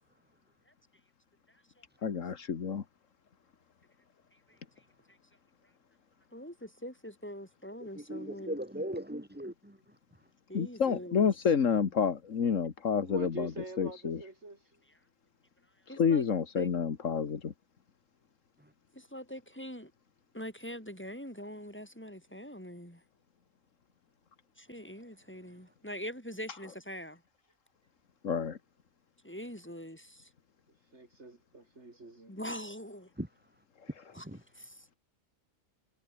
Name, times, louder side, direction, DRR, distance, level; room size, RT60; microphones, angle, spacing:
voice 1, 1.5-2.2 4.3-5.2 6.3-8.6 10.5-11.3 15.9-16.3 16.6-16.7 18.9-19.9 20.3-23.0 24.6-27.2 29.2-30.3 32.3-33.1 34.1-34.3 34.5-34.9, equal, 10° left, 5.2 m, -44 dB
voice 2, 2.0-2.8 10.5-13.5 13.8-14.2 16.0-17.5 28.2-28.6, left 6 dB, 80° left, 1.8 m, -29 dB
voice 3, 8.0-9.8 33.2-33.3 34.1-34.4, right 1 dB, 10° right, 2.3 m, -38 dB
voice 4, 13.0-14.8 30.9-32.4, right 2 dB, 60° right, 4.0 m, -45 dB
omnidirectional pair, 1.3 m